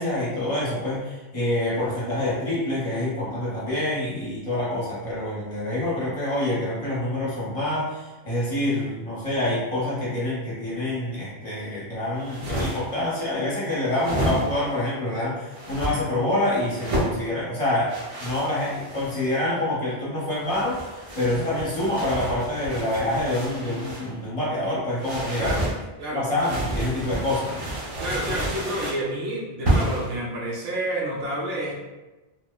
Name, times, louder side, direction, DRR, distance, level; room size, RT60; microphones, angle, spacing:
voice 1, 0.0-17.9 18.2-25.5 26.1-27.6, left 1 dB, 35° left, -8 dB, 0.9 m, -26 dB
sound 1, 12.1-13.0 13.9-14.8 15.5-15.9 16.7-17.2 17.9-19.3 20.3-24.1 25.0-25.8 26.4-29.0 29.6-30.1, right 1 dB, 40° right, 0.6 m, -30 dB
voice 2, 25.4-25.7 26.0-26.3 28.0-31.8, right 1 dB, 70° right, -2 dB, 0.9 m, -29 dB
3.0 x 2.1 x 2.2 m, 1.1 s
omnidirectional pair, 1.1 m